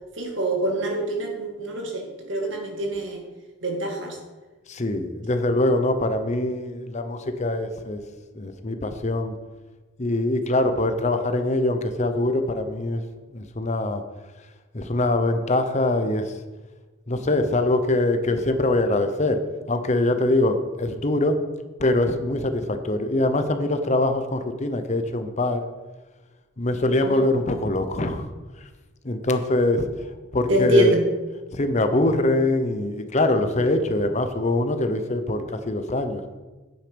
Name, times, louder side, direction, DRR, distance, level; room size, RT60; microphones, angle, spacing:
voice 1, 0.2-3.2 3.6-4.2 27.0-27.3 30.5-31.1, right 1 dB, 60° right, 1 dB, 2.2 m, -25 dB
voice 2, 4.7-8.0 8.4-9.3 10.0-13.0 13.3-14.0 14.7-16.3 17.1-19.4 19.7-21.4 21.8-25.6 26.6-28.3 29.0-29.9 30.3-31.0 31.5-36.2, left 2 dB, 35° left, 8 dB, 0.8 m, -23 dB
9.0 x 8.4 x 5.2 m, 1.2 s
head